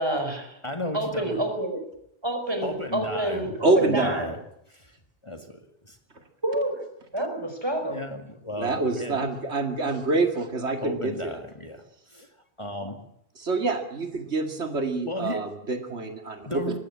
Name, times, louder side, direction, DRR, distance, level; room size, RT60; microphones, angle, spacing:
voice 1, 0.0-0.6 0.9-1.8 2.2-4.3 6.4-6.8 7.1-8.0, right 1 dB, 25° right, 5 dB, 5.1 m, -28 dB
voice 2, 0.6-1.5 2.6-4.4 4.7-5.0 5.2-6.0 7.9-9.3 10.8-13.0 15.1-15.5 16.5-16.8, left 1 dB, 25° left, 6 dB, 2.1 m, -35 dB
voice 3, 3.6-4.1 8.6-11.4 13.4-16.8, right 3 dB, 90° right, 6 dB, 2.6 m, -26 dB
20.5 x 15.5 x 9.8 m, 0.75 s
omnidirectional pair, 1.1 m